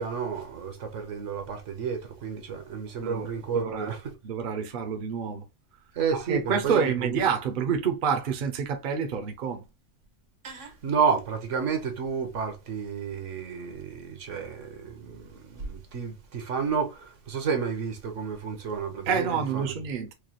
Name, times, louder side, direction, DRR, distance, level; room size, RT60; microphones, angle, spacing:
voice 1, 0.0-4.1 5.9-7.2 10.4-19.7, right 6 dB, 75° right, 1.3 m, -31 dB
voice 2, 3.5-3.9 4.2-5.4 6.3-9.6 19.1-20.1, right 6 dB, 50° right, 0.8 m, -28 dB
4.8 x 2.3 x 2.8 m
omnidirectional pair, 1.3 m